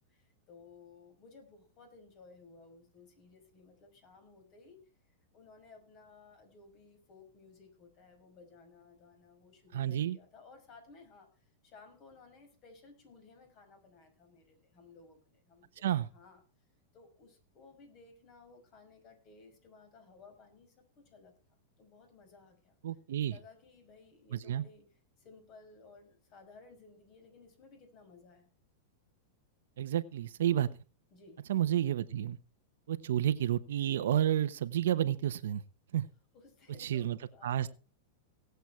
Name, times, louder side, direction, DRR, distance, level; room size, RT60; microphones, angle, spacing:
voice 1, 0.1-4.8 5.3-15.8 16.1-16.4 16.9-22.7 23.3-24.9 25.2-28.5 31.1-31.4 36.3-37.7, left 4 dB, 40° left, 6 dB, 5.7 m, -58 dB
voice 2, 9.7-10.2 15.8-16.1 22.8-23.3 24.3-24.6 29.8-30.7 31.5-32.4 32.9-35.6 35.9-36.1 36.8-37.2 37.4-37.7, right 11 dB, 80° right, 12 dB, 1.0 m, -30 dB
18.5 x 8.1 x 4.6 m, 0.34 s
supercardioid pair, 140°, 0 cm